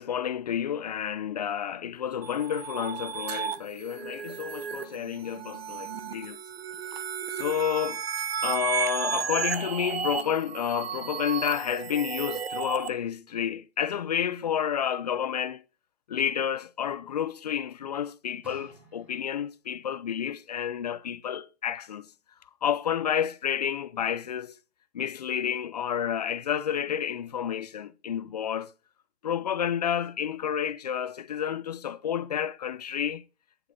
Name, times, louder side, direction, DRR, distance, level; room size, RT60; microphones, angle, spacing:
voice 1, 0.0-6.4 7.3-8.0 8.4-15.6 16.1-22.1 22.6-24.6 24.9-28.7 29.2-33.2, left 9 dB, 40° left, 0.5 m, -30 dB
sound 1, 2.2-12.9, right 7 dB, 70° right, 1.3 m, -33 dB
sound 2, 3.2-7.7, right 7 dB, 40° right, 1.7 m, -49 dB
sound 3, 18.4-19.7 20.5-20.6, equal, 5° right, 3.0 m, -53 dB
10.0 x 7.7 x 4.0 m
hypercardioid pair, 170°, 32 cm